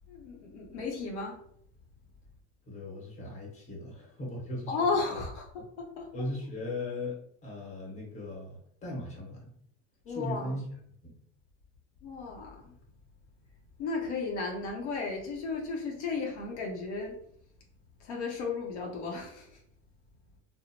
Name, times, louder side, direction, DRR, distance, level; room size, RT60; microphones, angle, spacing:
voice 1, 0.1-1.4 4.7-5.4 5.8-6.1 10.1-10.5 12.0-12.7 13.8-17.2 18.0-19.6, left 4 dB, 80° left, 0 dB, 0.7 m, -34 dB
voice 2, 2.6-5.2 6.1-9.5 10.1-10.6 11.0-11.1, left 1 dB, 20° left, -3 dB, 1.3 m, -38 dB
2.8 x 2.0 x 2.8 m, 0.67 s
supercardioid pair, 115°, 34 cm